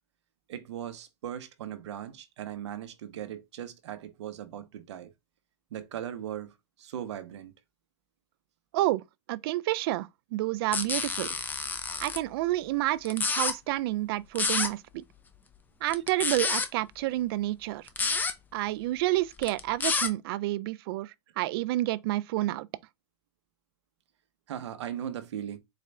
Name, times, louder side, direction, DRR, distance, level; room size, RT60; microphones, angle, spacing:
voice 1, 0.5-5.1 5.7-7.5 11.3-11.4 24.5-25.6, right 10 dB, 75° right, 0.8 m, -38 dB
voice 2, 8.7-11.3 12.0-15.0 15.8-17.9 18.5-22.7, right 16 dB, 55° right, 0.4 m, -29 dB
sound 1, 10.7-12.2 13.0-13.5 14.3-14.7 15.9-16.7 17.9-18.3 19.4-20.1, left 4 dB, 10° left, 0.4 m, -29 dB
4.3 x 2.4 x 3.2 m
hypercardioid pair, 130°, 15 cm